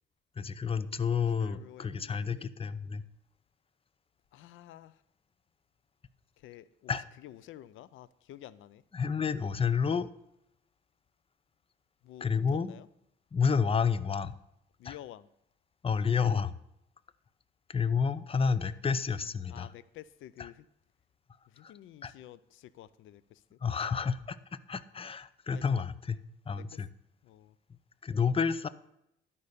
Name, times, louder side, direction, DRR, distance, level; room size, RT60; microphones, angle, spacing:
voice 1, 0.4-3.0 6.9-7.1 8.9-10.1 12.2-12.7 13.3-14.3 14.8-15.0 15.8-16.5 17.7-19.7 20.4-20.5 21.6-21.7 22.0-22.1 23.6-24.4 24.7-26.2 26.5-26.9 28.0-28.7, left 6 dB, 30° left, 15 dB, 0.7 m, -30 dB
voice 2, 1.4-2.5 4.3-5.0 6.4-7.0 7.2-8.8 12.0-12.9 14.8-15.3 19.5-20.7 21.5-23.8 25.5-25.6 26.5-26.8 27.2-27.5, left 13 dB, 80° left, 17 dB, 0.5 m, -50 dB
12.0 x 5.4 x 6.6 m, 0.80 s
cardioid pair, 90°, 20 cm